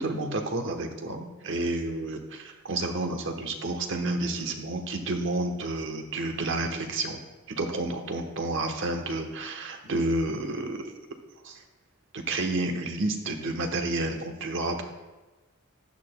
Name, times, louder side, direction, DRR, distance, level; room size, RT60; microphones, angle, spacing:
voice 1, 0.0-7.2 7.5-10.9 11.4-11.6 12.1-14.8, right 2 dB, 65° right, 4 dB, 1.0 m, -30 dB
14.5 x 10.5 x 2.2 m, 1.2 s
head